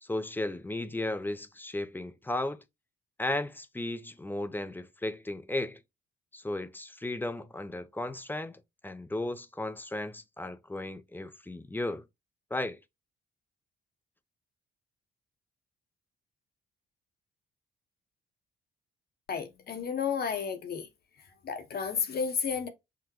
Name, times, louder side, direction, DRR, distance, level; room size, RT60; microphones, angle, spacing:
voice 1, 0.0-2.6 3.2-5.8 6.3-12.0 12.5-12.8, left 2 dB, 10° left, 0.4 m, -35 dB
voice 2, 19.3-20.9 21.2-22.7, left 6 dB, 55° left, 0.8 m, -32 dB
5.9 x 2.1 x 2.9 m
cardioid pair, 90°, 20 cm